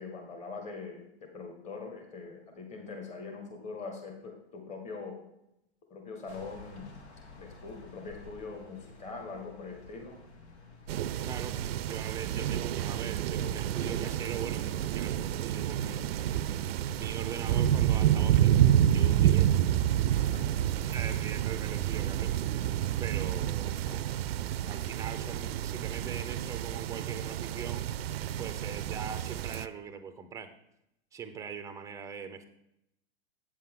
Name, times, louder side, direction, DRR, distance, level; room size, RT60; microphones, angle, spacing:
voice 1, 0.0-5.2 5.9-6.9 7.4-10.2 18.9-19.0 20.1-20.6, left 4 dB, 20° left, 3 dB, 1.5 m, -43 dB
sound 1, 6.3-21.2, left 3 dB, 80° left, 1.6 m, -53 dB
sound 2, 10.9-29.7, right 11 dB, 65° right, 0.5 m, -29 dB
voice 2, 11.2-16.1 16.8-19.7 20.6-22.6 23.0-24.1 24.7-27.9 28.4-30.5 31.1-32.4, right 7 dB, 10° right, 8 dB, 0.5 m, -41 dB
8.5 x 7.4 x 3.7 m, 0.82 s
hypercardioid pair, 125°, 33 cm